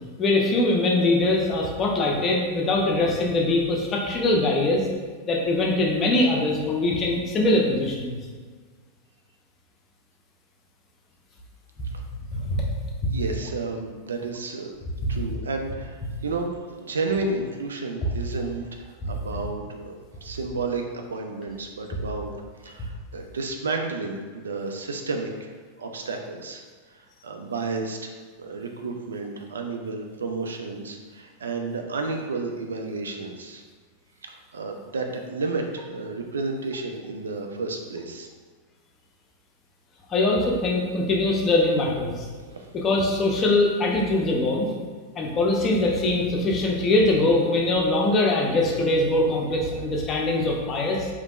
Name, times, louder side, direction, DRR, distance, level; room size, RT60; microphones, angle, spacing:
voice 1, 0.2-4.8 5.3-8.2 12.3-12.6 15.0-15.1 19.0-19.1 40.1-42.3 42.7-44.7 45.2-51.1, left 2 dB, 30° left, -1 dB, 0.6 m, -22 dB
voice 2, 13.1-14.7 15.1-16.0 16.2-19.9 20.2-20.8 21.1-22.3 22.6-25.5 25.8-26.6 26.9-28.1 28.4-33.6 34.2-38.3 42.5-42.7, right 3 dB, 70° right, 3 dB, 0.3 m, -31 dB
3.3 x 3.1 x 2.4 m, 1.5 s
figure-of-eight pair, 90°, 0 cm